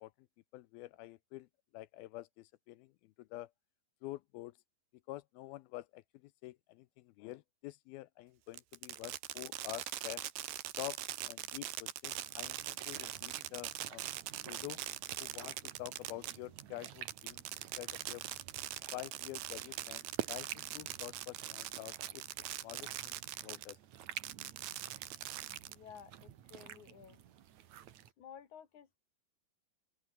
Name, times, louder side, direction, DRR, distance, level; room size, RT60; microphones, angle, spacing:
voice 1, 0.5-1.5 1.7-3.5 4.0-4.5 5.1-10.2 10.8-11.0 11.2-14.1 14.4-14.8 15.2-18.2 18.9-20.5 20.7-22.2 22.6-23.1 23.4-23.8, left 17 dB, 80° left, 2.3 m, -47 dB
Fireworks, 8.5-23.8 24.2-26.0, right 13 dB, 75° right, 3.5 m, -42 dB
sound 1, 12.2-28.1, right 11 dB, 60° right, 2.2 m, -50 dB
voice 2, 25.7-27.2 28.2-29.0, left 8 dB, 50° left, 3.4 m, -54 dB
open air
omnidirectional pair, 4.7 m